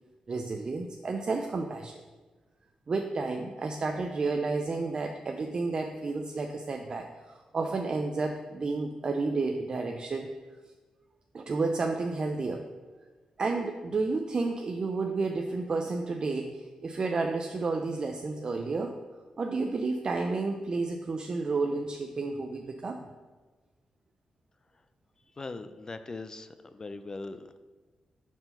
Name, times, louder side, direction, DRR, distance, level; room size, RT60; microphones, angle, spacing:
voice 1, 0.3-2.0 2.9-10.3 11.3-12.7 13.4-19.0 19.4-23.1, right 3 dB, 40° right, 4 dB, 0.4 m, -31 dB
voice 2, 25.4-27.6, left 3 dB, 30° left, 10 dB, 0.4 m, -40 dB
5.9 x 4.4 x 5.4 m, 1.3 s
cardioid pair, 105°, 2 cm